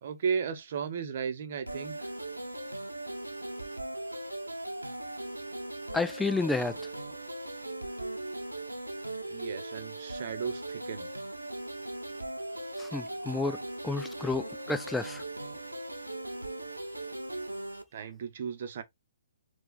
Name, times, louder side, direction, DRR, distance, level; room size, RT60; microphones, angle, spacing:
voice 1, 0.0-2.1 9.3-11.1 17.9-18.8, right 6 dB, 45° right, 0.8 m, -35 dB
sound 1, 1.7-17.8, right 1 dB, 85° right, 0.8 m, -39 dB
voice 2, 5.9-6.8 12.8-13.6 13.8-15.2, left 3 dB, 5° left, 0.3 m, -30 dB
4.6 x 2.4 x 3.9 m
figure-of-eight pair, 130°, 0 cm